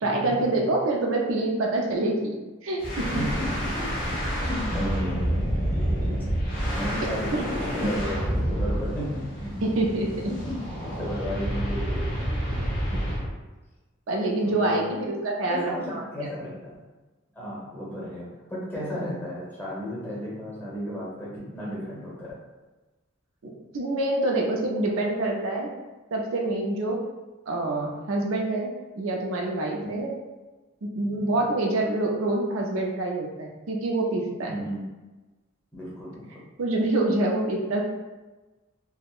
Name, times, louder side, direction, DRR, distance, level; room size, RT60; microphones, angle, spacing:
voice 1, 0.0-2.4 2.6-3.2 7.8-7.9 9.6-10.3 12.9-13.2 14.1-16.3 23.4-25.7 26.1-27.0 27.5-30.2 30.8-34.6 36.6-37.8, right 2 dB, 75° right, -1 dB, 0.5 m, -26 dB
sound 1, 2.8-13.3, equal, 45° left, 1.0 m, -28 dB
voice 2, 3.1-6.1 6.7-9.7 10.3-10.5 10.9-12.1 14.4-15.0 15.5-16.7 17.3-22.3 29.8-30.0 31.1-31.4 34.5-34.8 35.7-36.4, equal, 10° left, -7 dB, 0.9 m, -34 dB
3.5 x 2.1 x 2.4 m, 1.2 s
head